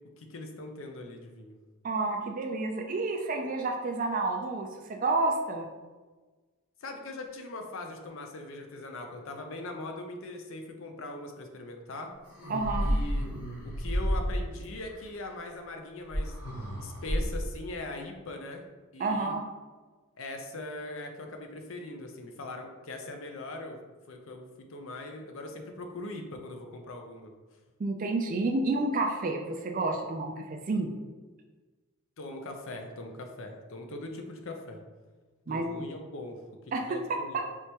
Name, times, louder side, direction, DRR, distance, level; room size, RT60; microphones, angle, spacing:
voice 1, 0.2-1.6 6.8-12.1 12.8-13.3 13.6-16.4 16.8-18.6 18.9-19.4 20.2-23.8 24.1-27.3 32.2-34.8 35.5-36.4 36.8-37.4, left 2 dB, 60° left, 4 dB, 0.6 m, -41 dB
voice 2, 1.8-5.7 12.5-13.0 19.0-19.4 27.8-30.9 35.5-35.7 36.7-36.9 37.3-37.4, right 3 dB, 35° right, 3 dB, 0.3 m, -30 dB
sound 1, 12.2-14.7 16.1-17.5, equal, 90° left, 1.5 m, -31 dB
4.6 x 3.4 x 2.9 m, 1.3 s
head